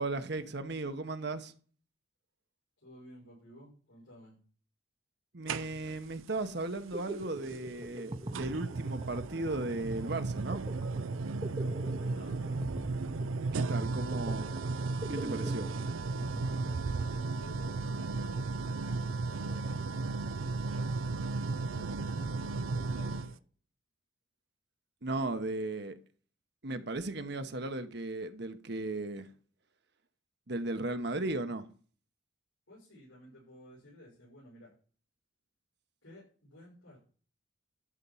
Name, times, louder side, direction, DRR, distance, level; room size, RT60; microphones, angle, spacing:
voice 1, 0.0-1.5 5.3-10.6 13.5-14.5 15.1-15.7 25.0-26.0 26.6-29.3 30.5-31.7, right 2 dB, 55° right, 1.0 m, -36 dB
voice 2, 2.8-4.4 12.0-12.6 16.4-18.5 19.2-20.0 20.7-23.4 32.7-34.7 36.0-37.0, left 1 dB, 85° left, 6.1 m, -54 dB
sound 1, 5.5-6.1 7.5-7.6 8.3-23.3, right 3 dB, 85° right, 0.5 m, -35 dB
sound 2, 6.9-17.4, right 1 dB, 25° right, 0.8 m, -43 dB
12.5 x 4.5 x 7.1 m
head